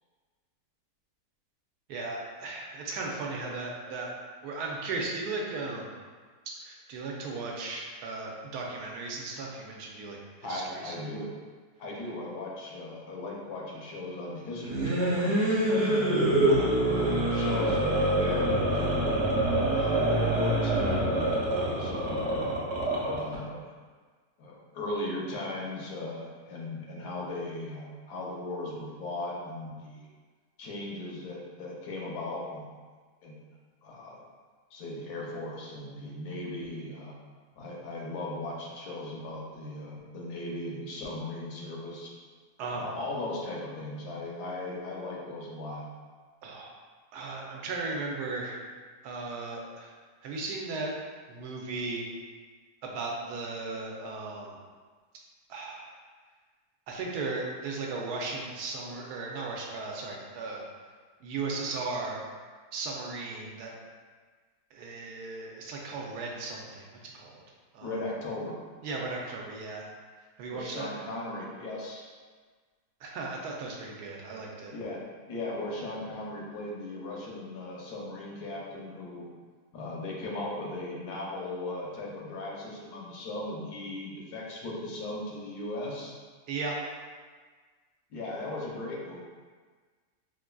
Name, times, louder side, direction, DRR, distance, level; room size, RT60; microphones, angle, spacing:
voice 1, 1.9-4.1 4.4-5.9 6.6-10.9 16.5-16.7 42.6-42.8 46.4-46.7 47.1-48.6 49.0-49.9 50.2-50.9 51.3-52.1 52.8-54.6 55.5-55.9 56.9-60.6 61.2-62.2 62.7-63.8 64.7-66.9 67.1-67.4 67.7-68.0 68.8-69.9 70.4-70.9 73.0-74.7 86.5-86.8, right 3 dB, 75° right, -1 dB, 1.1 m, -36 dB
voice 2, 10.4-11.3 11.8-16.1 16.8-19.1 19.7-22.5 23.1-23.7 24.4-30.1 30.6-32.6 33.2-33.4 33.8-34.2 34.7-37.2 37.6-42.1 42.8-45.8 67.8-68.6 70.5-72.1 74.7-75.0 75.3-79.3 79.7-86.1 88.1-89.2, left 2 dB, 75° left, -3 dB, 1.2 m, -37 dB
sound 1, 14.6-23.4, right 1 dB, 60° right, 0.8 m, -26 dB
4.7 x 2.4 x 2.2 m, 1.5 s
omnidirectional pair, 1.7 m